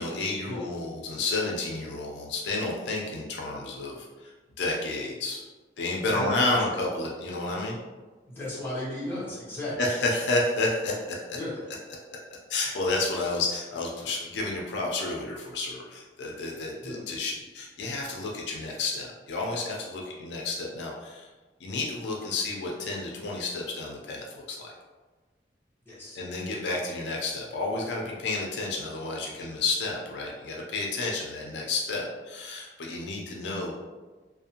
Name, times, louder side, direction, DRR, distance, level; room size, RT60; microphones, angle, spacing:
voice 1, 0.0-4.3 4.6-5.4 5.8-7.8 9.8-11.4 12.5-21.3 21.6-24.7 26.1-33.7, left 2 dB, 75° left, -1 dB, 0.4 m, -31 dB
voice 2, 8.3-9.8 11.3-11.6 16.8-17.0 25.9-26.2, left 1 dB, 10° left, -8 dB, 0.8 m, -35 dB
2.4 x 2.0 x 2.8 m, 1.3 s
head